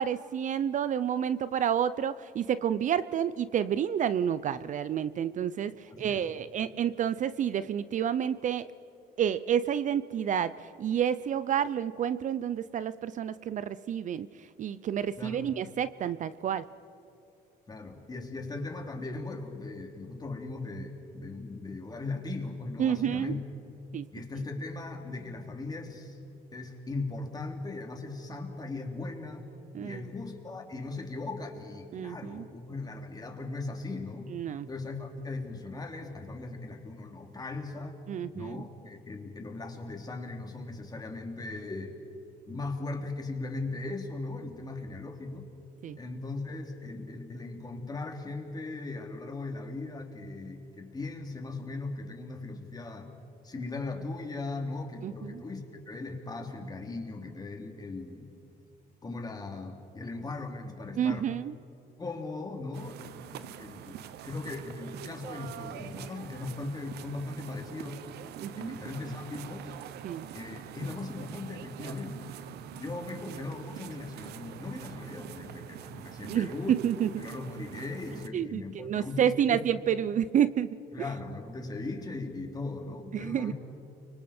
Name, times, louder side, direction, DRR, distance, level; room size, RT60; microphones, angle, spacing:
voice 1, 0.0-5.7 6.0-8.6 9.2-14.3 14.6-16.7 22.8-23.4 23.9-24.1 29.7-30.0 31.9-32.5 34.3-34.7 38.1-38.6 45.8-46.0 55.0-55.4 61.0-61.5 68.4-68.8 70.0-70.2 76.3-77.1 78.3-80.7 83.1-83.5, right 9 dB, 50° right, 15 dB, 0.6 m, -29 dB
voice 2, 5.9-6.3 15.2-15.5 17.7-23.4 24.1-26.2 26.5-29.5 29.8-34.3 34.7-38.0 38.3-42.0 42.5-45.5 46.0-53.1 53.4-58.3 59.0-61.3 62.0-68.0 68.6-69.7 70.3-72.4 72.8-76.7 77.0-79.6 80.9-83.5, left 3 dB, 25° left, 3 dB, 3.2 m, -38 dB
sound 1, 62.7-78.3, right 11 dB, 75° right, 0.9 m, -45 dB
30.0 x 25.0 x 4.4 m, 2.9 s
cardioid pair, 110°, 17 cm